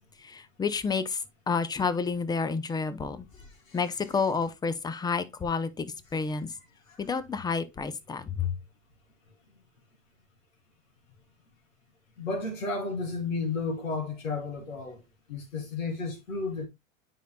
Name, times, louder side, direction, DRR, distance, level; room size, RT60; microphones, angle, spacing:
voice 1, 0.2-3.2 3.7-6.5 7.0-8.5, left 5 dB, 10° left, 0.6 m, -30 dB
voice 2, 12.2-15.0 15.3-16.7, left 3 dB, 85° left, 3.1 m, -32 dB
9.2 x 5.5 x 2.2 m
hypercardioid pair, 105°, 39 cm